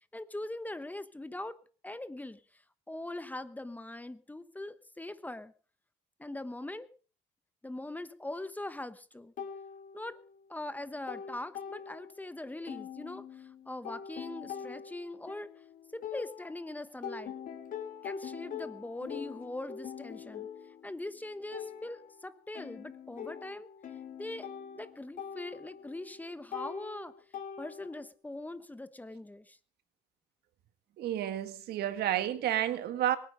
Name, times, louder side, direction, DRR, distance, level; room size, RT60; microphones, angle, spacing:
voice 1, 0.1-1.6 1.8-2.6 2.9-5.5 6.2-6.9 7.6-9.3 9.9-10.2 10.5-15.5 15.9-17.3 18.0-20.5 20.8-23.7 24.2-24.5 24.7-27.1 27.6-29.6, left 1 dB, 10° left, 1.1 m, -41 dB
sound 1, 9.4-10.5 10.8-12.3 12.7-16.7 17.0-28.1, left 8 dB, 55° left, 3.2 m, -44 dB
voice 2, 31.0-33.2, right 12 dB, 75° right, 1.9 m, -31 dB
23.0 x 9.8 x 5.2 m
cardioid pair, 110°, 17 cm